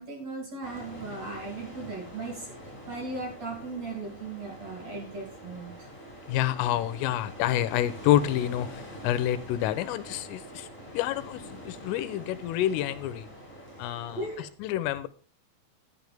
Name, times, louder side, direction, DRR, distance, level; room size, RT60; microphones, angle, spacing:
voice 1, 0.0-2.5 2.9-5.9 14.1-14.4, right 3 dB, 40° right, -1 dB, 3.4 m, -37 dB
sound 1, 0.6-14.5, equal, ahead, 5.1 m, -45 dB
voice 2, 6.3-10.7 10.9-13.3 13.8-15.1, left 12 dB, 85° left, 13 dB, 3.2 m, -28 dB
10.5 x 9.8 x 3.5 m, 0.39 s
omnidirectional pair, 5.9 m